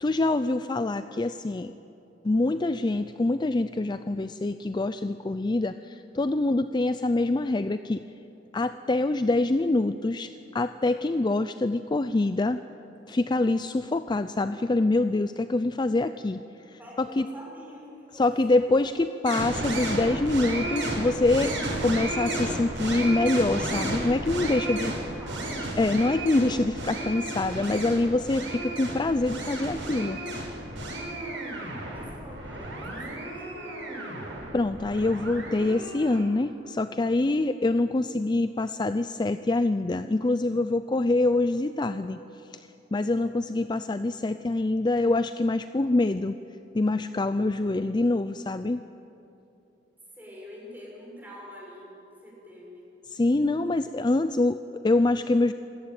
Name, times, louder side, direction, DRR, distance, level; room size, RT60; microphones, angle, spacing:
voice 1, 0.0-1.7 2.2-8.0 8.5-12.6 13.1-16.4 16.7-17.2 18.1-21.5 21.8-24.9 25.8-30.2 34.5-42.2 42.9-46.3 46.7-48.8 53.1-55.5, left 2 dB, 25° left, 11 dB, 0.4 m, -25 dB
voice 2, 16.8-18.2 18.8-19.4 24.3-25.7 31.1-34.4 50.1-52.9, equal, 10° right, -3 dB, 6.3 m, -46 dB
sound 1, 19.3-36.2, right 1 dB, 75° right, 6.3 m, -33 dB
27.0 x 14.5 x 8.9 m, 2.9 s
head